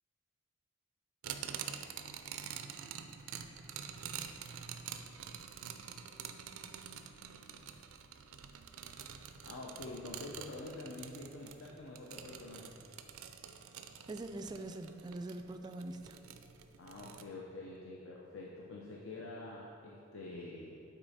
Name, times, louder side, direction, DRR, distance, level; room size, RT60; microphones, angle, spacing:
sound 1, 1.2-17.2, right 8 dB, 85° right, 0.4 m, -47 dB
voice 1, 9.4-12.8 16.8-20.8, left 2 dB, 70° left, -3 dB, 0.7 m, -46 dB
voice 2, 14.1-16.2, right 2 dB, 20° right, 7 dB, 0.3 m, -43 dB
9.0 x 4.1 x 4.2 m, 2.5 s
head